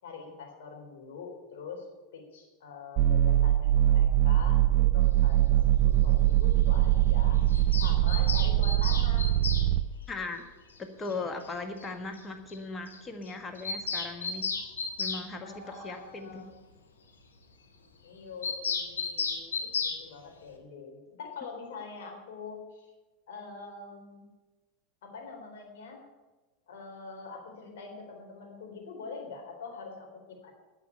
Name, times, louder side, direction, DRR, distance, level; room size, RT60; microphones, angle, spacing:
voice 1, 0.0-1.9 2.1-7.4 7.8-9.3 15.4-16.7 18.0-22.9 23.3-24.2 25.0-26.1 26.7-30.5, left 4 dB, 70° left, 1 dB, 3.8 m, -44 dB
sound 1, 3.0-9.8, right 13 dB, 45° right, 0.7 m, -23 dB
Bird vocalization bird call bird song, 7.5-9.7 11.1-11.2 11.4-11.5 11.8-11.9 12.2-12.3 12.5-12.6 12.9-13.0 13.3-15.2 18.4-20.0, left 5 dB, 85° left, 1.5 m, -33 dB
voice 2, 10.1-10.4 10.8-14.5 15.0-16.5, left 3 dB, 25° left, 6 dB, 1.5 m, -38 dB
10.0 x 8.1 x 9.8 m, 1.2 s
hypercardioid pair, 90°, 0 cm